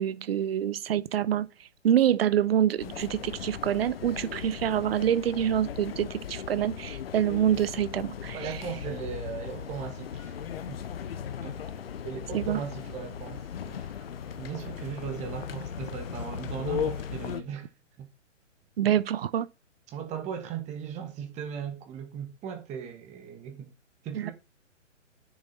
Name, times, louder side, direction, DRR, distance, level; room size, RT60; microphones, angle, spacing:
voice 1, 0.0-1.5 1.8-8.6 12.3-12.6 18.8-19.5 24.1-24.3, right 10 dB, 50° right, 0.7 m, -26 dB
sound 1, 2.8-17.4, left 6 dB, 85° left, 0.9 m, -42 dB
sound 2, 2.8-17.4, left 9 dB, 50° left, 0.9 m, -39 dB
voice 2, 8.3-10.4 10.7-10.8 11.4-11.6 12.0-13.9 14.4-17.7 18.0-18.1 19.9-23.7 24.0-24.3, right 7 dB, 20° right, 1.9 m, -38 dB
9.6 x 7.0 x 4.2 m
figure-of-eight pair, 125°, 38 cm